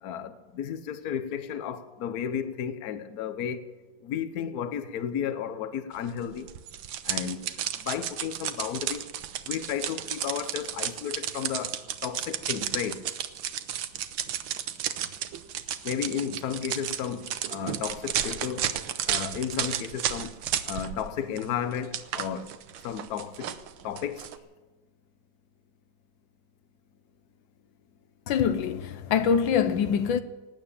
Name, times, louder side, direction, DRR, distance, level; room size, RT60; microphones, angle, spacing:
voice 1, 0.0-3.7 4.0-6.5 7.0-9.1 9.5-13.0 15.8-18.7 19.1-20.4 20.6-22.5 22.8-23.6 23.8-24.3, left 8 dB, 60° left, 1.3 m, -33 dB
sound 1, 6.5-21.1 21.4-24.4, right 10 dB, 80° right, 1.6 m, -33 dB
voice 2, 28.3-30.2, left 7 dB, 75° left, 1.5 m, -24 dB
18.5 x 9.1 x 8.6 m
omnidirectional pair, 2.1 m